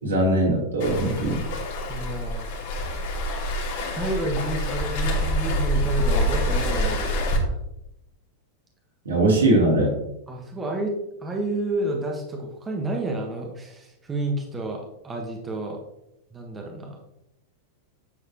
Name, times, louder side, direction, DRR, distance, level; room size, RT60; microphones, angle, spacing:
voice 1, 0.0-1.4 9.1-10.0, right 1 dB, 70° right, -3 dB, 3.4 m, -21 dB
Waves surf, 0.8-7.4, equal, 50° left, 2.4 m, -26 dB
voice 2, 1.9-2.5 3.9-7.6 10.3-10.9 11.2-15.8 16.3-17.0, right 1 dB, 15° right, 1 dB, 1.4 m, -30 dB
9.9 x 7.3 x 3.0 m, 0.84 s
figure-of-eight pair, 90°, 0 cm